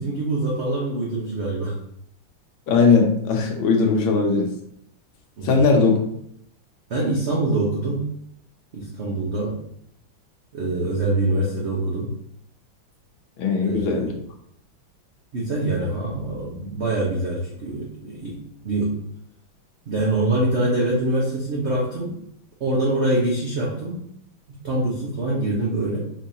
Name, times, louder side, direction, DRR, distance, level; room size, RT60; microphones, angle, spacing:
voice 1, 0.0-1.8 5.4-5.6 6.9-8.1 8.7-9.6 10.5-12.1 13.6-14.1 15.3-18.4 18.6-19.0 19.9-22.2 22.6-24.0 24.5-26.0, right 2 dB, 45° right, -4 dB, 0.9 m, -24 dB
voice 2, 2.7-4.5 5.4-6.0 13.4-14.1, left 4 dB, 80° left, 2 dB, 1.6 m, -19 dB
5.3 x 3.6 x 2.7 m, 0.70 s
omnidirectional pair, 2.2 m